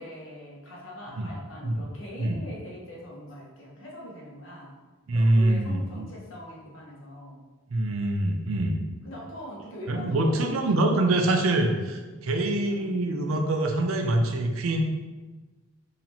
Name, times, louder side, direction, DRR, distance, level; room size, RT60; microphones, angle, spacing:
voice 1, 0.0-4.7 5.1-7.4 9.0-11.2 12.7-13.1, equal, 70° left, -4 dB, 1.0 m, -42 dB
voice 2, 5.1-6.1 7.7-8.8 9.9-14.8, right 1 dB, 80° right, 4 dB, 0.5 m, -24 dB
4.1 x 2.8 x 2.8 m, 1.2 s
head